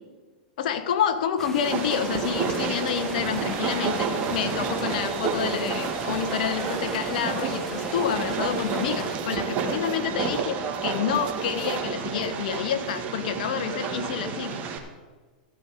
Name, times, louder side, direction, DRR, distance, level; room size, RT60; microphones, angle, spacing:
voice 1, 0.6-14.6, left 8 dB, 65° left, 9 dB, 1.3 m, -28 dB
sound 1, 1.1-2.9 3.3-7.6 8.0-14.6, right 8 dB, 65° right, 1.2 m, -43 dB
sound 2, 1.4-9.2, left 2 dB, 10° left, 0.7 m, -40 dB
Train, 1.6-14.8, right 5 dB, 35° right, 2.2 m, -30 dB
14.0 x 5.3 x 9.1 m, 1.4 s
hypercardioid pair, 110°, 5 cm